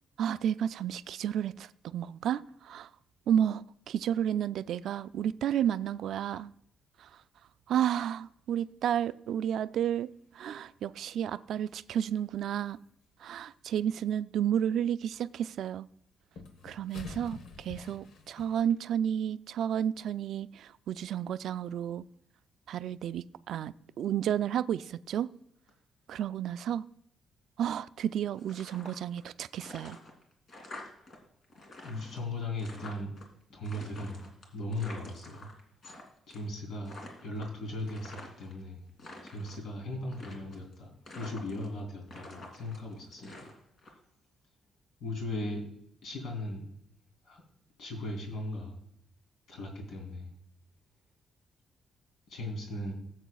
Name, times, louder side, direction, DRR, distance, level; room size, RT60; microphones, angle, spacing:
voice 1, 0.2-2.9 3.3-6.5 7.0-7.1 7.7-10.1 10.3-12.8 13.2-15.9 16.6-22.0 22.7-25.3 26.1-26.8 27.6-30.0, right 9 dB, 70° right, 0.3 m, -31 dB
sound 1, 10.0-10.1 13.2-13.3 15.4-15.5 16.3-18.7, left 3 dB, 80° left, 1.1 m, -46 dB
sound 2, 28.4-29.3 29.5-31.2 31.4-33.2 33.6-36.0 36.3-36.6 36.8-38.5 38.9-39.6 40.1-40.7 41.1-41.8 42.1-43.9, left 2 dB, 45° left, 2.5 m, -48 dB
voice 2, 31.8-33.1 33.5-34.2 34.5-35.5 36.3-38.8 39.2-43.5 45.0-45.6 46.0-46.6 47.2-47.4 47.8-48.8 49.5-50.3 52.3-52.9, left 1 dB, 65° left, 3.3 m, -38 dB
17.0 x 8.1 x 2.3 m
cardioid pair, 160°, 0 cm